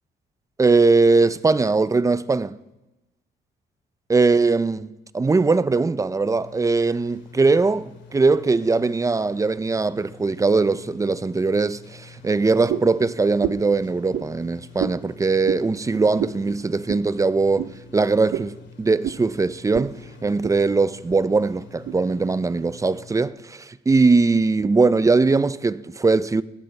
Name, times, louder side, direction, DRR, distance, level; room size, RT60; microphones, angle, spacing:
voice 1, 0.6-2.6 4.1-4.9 5.1-26.4, right 3 dB, 15° right, 0.5 m, -20 dB
sound 1, 6.2-23.3, left 5 dB, 65° left, 2.3 m, -47 dB
sound 2, 12.7-13.0 13.4-13.7 14.1-14.3 14.8-15.0 15.4-15.6 16.2-16.4 16.9-17.1 17.6-17.7 18.3-18.5 19.0-19.2 19.7-19.9 20.2-20.6 21.1-21.2 21.8-22.0, right 10 dB, 70° right, 0.7 m, -28 dB
19.5 x 14.5 x 3.3 m
cardioid pair, 90°, 20 cm